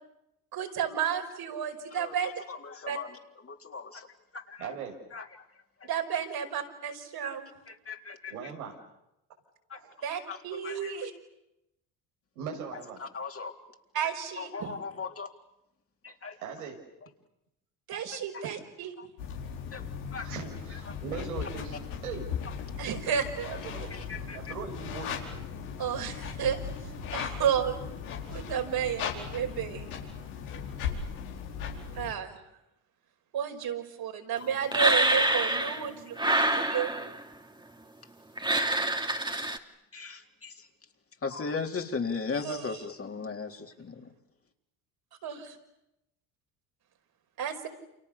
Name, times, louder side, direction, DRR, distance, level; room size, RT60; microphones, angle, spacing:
voice 1, 0.5-2.4 2.9-3.0 5.8-7.5 10.0-11.1 13.9-14.7 17.9-18.9 22.8-23.5 25.8-26.6 27.1-27.8 28.3-29.9 31.9-32.4 33.3-37.1 42.4-42.8 45.2-45.6 47.4-47.7, right 8 dB, 55° right, 4 dB, 5.3 m, -32 dB
voice 2, 1.9-3.1 3.4-4.1 4.3-4.7 5.1-5.3 5.8-5.9 7.2-7.4 7.7-8.3 9.7-9.8 10.3-10.4 10.6-10.9 13.0-13.5 14.4-15.3 16.0-16.4 18.3-18.4 19.0-19.1 19.7-19.8 20.1-20.4 20.9-21.0 23.9-24.5 39.9-40.7 41.2-44.1, left 4 dB, 30° left, 2 dB, 3.9 m, -37 dB
voice 3, 4.6-4.9 8.3-8.8 9.7-10.0 12.3-13.0 16.4-16.8 18.4-18.5 20.2-22.3 23.4-23.9 24.3-25.3, right 6 dB, 90° right, 1 dB, 6.4 m, -39 dB
sound 1, 19.2-32.1, left 7 dB, 85° left, 4.9 m, -38 dB
sound 2, 34.7-35.9 36.2-37.2 38.4-39.6, right 2 dB, 10° right, 2.7 m, -26 dB
30.0 x 28.0 x 7.0 m, 0.86 s
hypercardioid pair, 65°, 43 cm